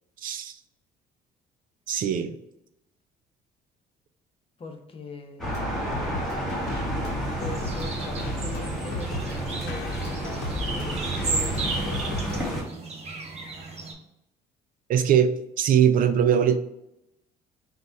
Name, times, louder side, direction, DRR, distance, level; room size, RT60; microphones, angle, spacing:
voice 1, 0.2-0.5 1.9-2.3 14.9-16.6, right 8 dB, 55° right, 9 dB, 0.4 m, -21 dB
voice 2, 4.6-5.6 7.3-12.9, left 3 dB, 35° left, 4 dB, 0.8 m, -42 dB
sound 1, 5.4-12.4, left 2 dB, 80° left, 0.8 m, -35 dB
sound 2, 5.4-12.6, right 1 dB, ahead, 1.3 m, -31 dB
sound 3, 7.4-13.9, right 4 dB, 40° right, 0.9 m, -35 dB
4.0 x 2.4 x 4.4 m, 0.84 s
cardioid pair, 110°, 17 cm